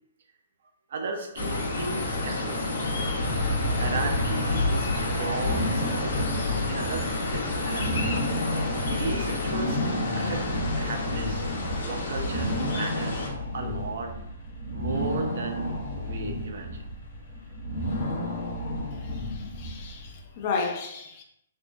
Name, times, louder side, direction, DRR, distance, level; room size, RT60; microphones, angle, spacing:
voice 1, 0.9-2.8 3.7-8.0 9.0-9.8 10.1-10.5 10.8-11.5 11.8-13.3 13.5-14.1 14.7-16.8, right 3 dB, 50° right, 0.4 m, -35 dB
sound 1, 1.3-13.3, left 2 dB, 70° left, 1.0 m, -29 dB
sound 2, 4.8-20.2, left 1 dB, 50° left, 1.0 m, -32 dB
voice 2, 19.0-21.2, left 4 dB, 30° left, 0.3 m, -33 dB
3.5 x 2.3 x 2.5 m
hypercardioid pair, 175°, 0 cm